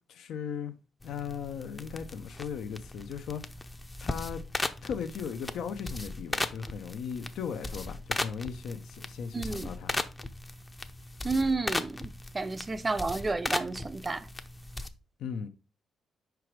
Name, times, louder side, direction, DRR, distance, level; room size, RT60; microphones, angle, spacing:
voice 1, 0.1-0.7 1.0-3.4 4.0-4.4 4.8-10.0 15.2-15.5, left 7 dB, 75° left, 0.6 m, -37 dB
sound 1, 1.0-14.9, left 2 dB, 20° left, 0.6 m, -37 dB
voice 2, 9.3-9.7 11.2-14.3, right 3 dB, 25° right, 0.5 m, -31 dB
5.0 x 4.7 x 4.6 m
cardioid pair, 90°, 0 cm